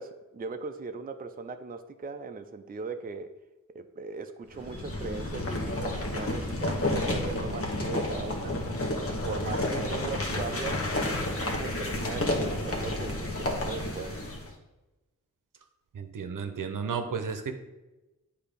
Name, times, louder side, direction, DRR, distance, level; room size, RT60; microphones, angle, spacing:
voice 1, 0.0-3.3 3.7-8.6 9.1-14.2, right 4 dB, 30° right, 7 dB, 0.4 m, -39 dB
sound 1, 4.5-14.5, left 1 dB, 45° left, 1.2 m, -31 dB
voice 2, 15.9-17.5, right 6 dB, 75° right, 7 dB, 0.7 m, -33 dB
8.1 x 2.8 x 5.1 m, 1.0 s
cardioid pair, 60°, 32 cm